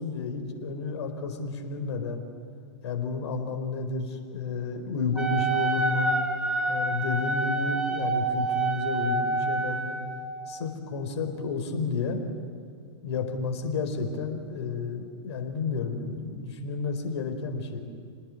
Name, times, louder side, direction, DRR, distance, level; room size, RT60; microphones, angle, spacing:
voice 1, 0.0-2.2 2.8-6.1 6.7-10.0 10.5-12.2 13.0-17.8, left 4 dB, 60° left, 5 dB, 4.4 m, -31 dB
Wind instrument woodwind instrument, 5.1-10.2, right 2 dB, 5° right, 3.5 m, -27 dB
28.5 x 19.5 x 9.8 m, 2.2 s
hypercardioid pair, 105°, 15 cm